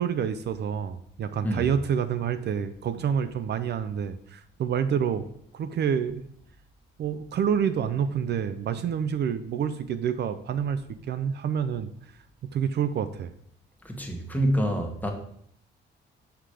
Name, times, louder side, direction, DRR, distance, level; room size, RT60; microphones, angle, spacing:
voice 1, 0.0-5.2 5.5-6.2 7.0-10.8 11.1-11.9 12.5-13.3, right 8 dB, 60° right, 11 dB, 0.6 m, -28 dB
voice 2, 13.8-15.1, equal, 10° left, 2 dB, 1.5 m, -26 dB
6.3 x 5.8 x 4.9 m, 0.68 s
cardioid pair, 90°, 20 cm